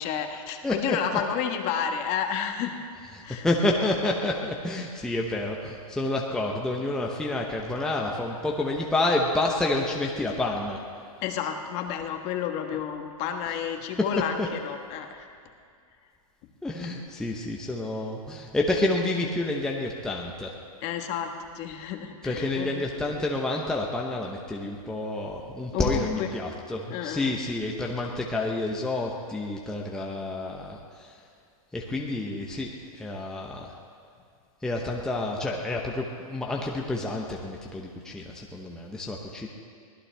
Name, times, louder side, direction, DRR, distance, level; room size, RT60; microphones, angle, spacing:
voice 1, 0.0-2.8 3.2-3.5 11.2-15.3 20.8-22.9 25.7-26.3 26.9-27.3, left 8 dB, 35° left, 5 dB, 1.4 m, -31 dB
voice 2, 0.6-1.0 3.1-10.8 14.4-14.5 16.6-20.5 22.2-31.1 31.7-33.7 34.6-39.5, left 2 dB, 5° left, -1 dB, 0.9 m, -29 dB
23.5 x 17.5 x 3.4 m, 2.3 s
hypercardioid pair, 150°, 19 cm